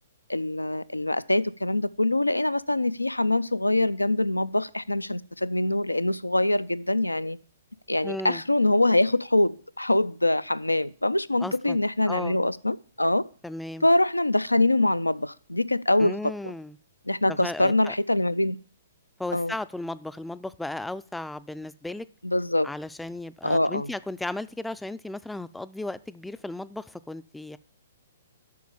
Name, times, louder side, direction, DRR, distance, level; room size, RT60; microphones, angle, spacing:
voice 1, 0.3-7.4 7.9-13.2 13.8-16.2 17.1-18.6 19.3-19.5 22.2-22.7 23.4-23.9, left 1 dB, 90° left, 0.4 m, -24 dB
voice 2, 8.0-8.4 11.4-11.8 12.1-12.4 13.4-13.9 16.0-16.8 17.3-17.9 19.2-22.1 22.6-27.6, left 2 dB, 5° left, 0.4 m, -35 dB
8.4 x 6.1 x 7.0 m
figure-of-eight pair, 120°, 0 cm